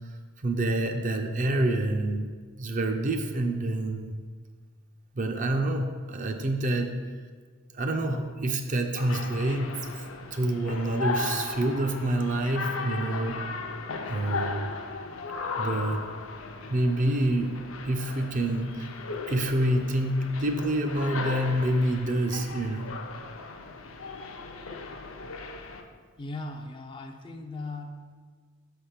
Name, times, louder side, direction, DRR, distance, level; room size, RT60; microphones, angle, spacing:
voice 1, 0.4-2.3 2.6-4.1 5.2-7.0 7.7-9.7 10.2-13.4 14.1-14.7 15.6-16.0 16.7-17.6 17.8-18.9 19.3-22.9, right 1 dB, 35° right, 5 dB, 0.4 m, -27 dB
sound 1, 9.0-25.8, left 4 dB, 70° left, 0.6 m, -36 dB
voice 2, 26.2-28.1, left 2 dB, 25° left, 4 dB, 0.3 m, -38 dB
6.0 x 3.4 x 5.6 m, 1.6 s
head